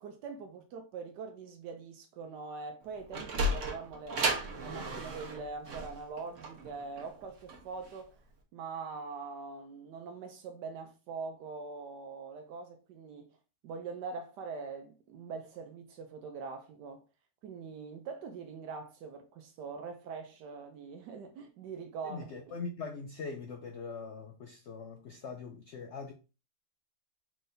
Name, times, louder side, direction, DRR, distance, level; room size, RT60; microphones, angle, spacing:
voice 1, 0.0-8.2 8.5-13.4 13.6-17.0 17.4-22.4, right 4 dB, 80° right, 1.2 m, -43 dB
Sliding door, 2.8-8.0, right 1 dB, 50° right, 1.2 m, -34 dB
voice 2, 22.0-26.1, left 4 dB, 75° left, 0.6 m, -42 dB
4.7 x 3.9 x 2.6 m
omnidirectional pair, 1.8 m